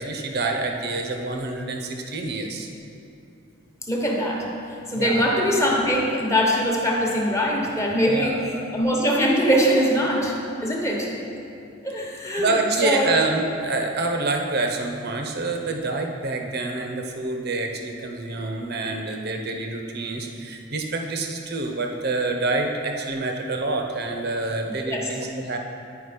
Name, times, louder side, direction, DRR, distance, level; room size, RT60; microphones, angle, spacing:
voice 1, 0.0-2.7 5.0-5.3 8.1-8.7 12.4-25.6, right 2 dB, 55° right, 3 dB, 0.8 m, -27 dB
voice 2, 3.9-4.5 4.9-10.3 10.6-11.1 11.8-12.5 12.8-13.2 24.9-25.1, equal, 15° left, -1 dB, 1.1 m, -22 dB
9.8 x 5.0 x 5.1 m, 2.6 s
head